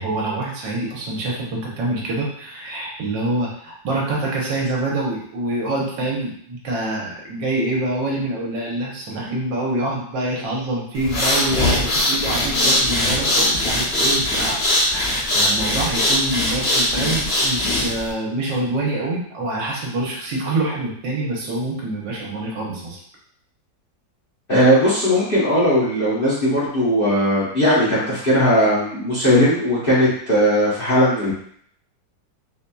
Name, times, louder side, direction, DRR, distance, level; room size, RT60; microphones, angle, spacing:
voice 1, 0.0-14.6 14.9-23.0, right 2 dB, 80° right, -2 dB, 1.6 m, -26 dB
sound 1, 11.0-18.1, left 1 dB, 70° left, 0.6 m, -20 dB
voice 2, 24.5-31.3, equal, 40° left, -9 dB, 0.8 m, -18 dB
4.2 x 2.6 x 2.2 m, 0.63 s
omnidirectional pair, 2.0 m